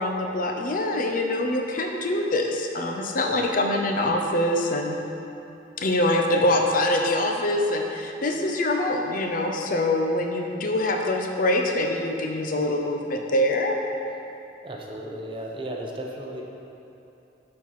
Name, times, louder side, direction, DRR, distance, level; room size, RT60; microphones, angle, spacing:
voice 1, 0.0-5.0 5.8-13.8, left 1 dB, 50° left, 2 dB, 0.6 m, -24 dB
voice 2, 14.6-16.4, right 1 dB, 30° right, 0 dB, 0.7 m, -34 dB
7.5 x 4.2 x 5.6 m, 2.8 s
head